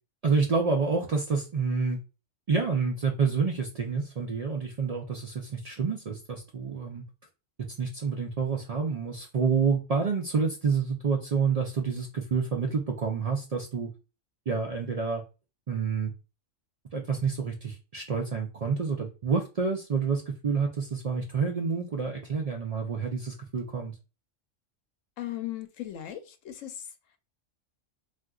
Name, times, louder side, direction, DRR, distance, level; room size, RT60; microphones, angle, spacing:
voice 1, 0.2-2.0 2.5-7.0 7.8-13.9 14.5-15.2 15.7-16.1 16.9-23.9, right 5 dB, 70° right, 0.3 m, -28 dB
voice 2, 25.2-27.2, left 13 dB, 90° left, 1.0 m, -38 dB
3.7 x 2.5 x 2.3 m
omnidirectional pair, 1.3 m